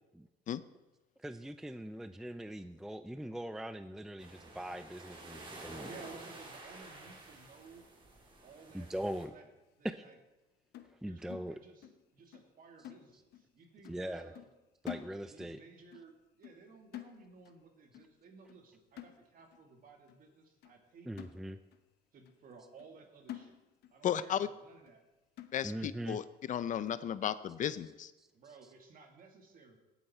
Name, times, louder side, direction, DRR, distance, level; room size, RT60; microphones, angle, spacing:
voice 1, 1.2-5.9 8.7-9.3 9.8-10.0 11.0-11.6 13.9-14.3 14.8-15.6 21.1-21.6 25.6-26.2 28.2-28.3, right 1 dB, ahead, 11 dB, 0.4 m, -41 dB
sound 1, 4.2-9.3, right 2 dB, 30° right, 3.1 m, -51 dB
voice 2, 5.8-7.9 8.4-9.5 9.8-10.2 11.0-14.5 15.3-21.5 22.1-23.6 23.9-25.0 28.3-29.8, right 4 dB, 55° right, 4 dB, 2.4 m, -56 dB
sound 2, 10.7-12.1 12.3-12.6 12.8-13.5 13.8-14.1 14.4-15.6 15.9-16.1 16.4-17.6 17.9-18.2 18.5-18.7 19.0-19.6 20.1-20.2 20.6-20.8 21.2-21.9 22.3-22.4 22.8-23.0 23.3-24.0 24.3-24.4 24.9-25.0 25.4-25.9 26.4-26.5 26.9-27.1, left 12 dB, 75° left, 0.9 m, -49 dB
voice 3, 24.0-24.5 25.5-28.1, left 9 dB, 50° left, 15 dB, 0.6 m, -34 dB
18.0 x 8.3 x 4.4 m, 1.1 s
cardioid pair, 110°, 17 cm